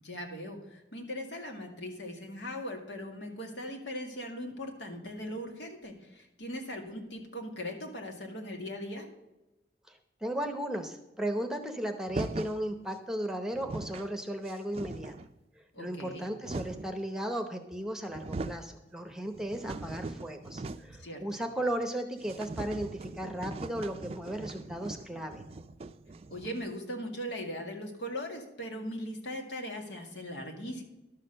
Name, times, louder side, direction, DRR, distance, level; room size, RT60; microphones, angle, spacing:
voice 1, 0.0-9.1 15.7-16.3 21.0-21.4 26.3-30.8, equal, 90° left, 2 dB, 2.1 m, -39 dB
voice 2, 9.9-15.1 15.8-25.4, right 1 dB, 5° right, 6 dB, 0.8 m, -35 dB
sound 1, 12.1-12.6 13.3-13.4 13.5-14.1 14.5-15.3 16.0-17.0 17.7-17.8 18.1-18.7 19.1-21.0 21.3-21.4 21.7-21.8 22.2-26.7, right 2 dB, 35° right, 0.4 m, -40 dB
12.0 x 6.5 x 6.5 m, 0.98 s
head